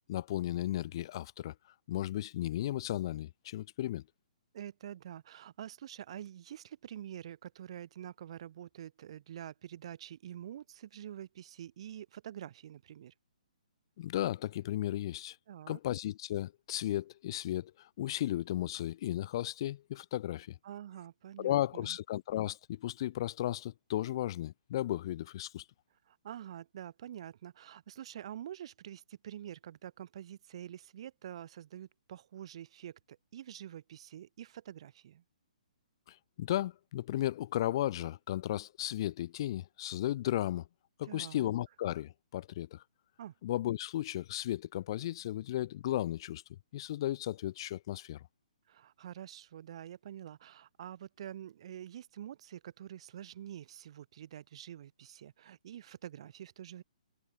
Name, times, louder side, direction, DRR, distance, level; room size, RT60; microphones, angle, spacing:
voice 1, 0.1-1.5 1.9-4.0 14.0-15.4 15.7-20.6 21.4-25.6 36.1-40.6 41.0-42.8 43.4-46.4 46.7-48.2, left 13 dB, 35° left, 0.6 m, -35 dB
voice 2, 4.5-13.1 15.5-15.8 20.6-22.0 26.1-35.2 41.0-41.5 43.2-43.3 48.7-56.8, right 11 dB, 45° right, 1.0 m, -47 dB
hypercardioid pair, 165°, 4 cm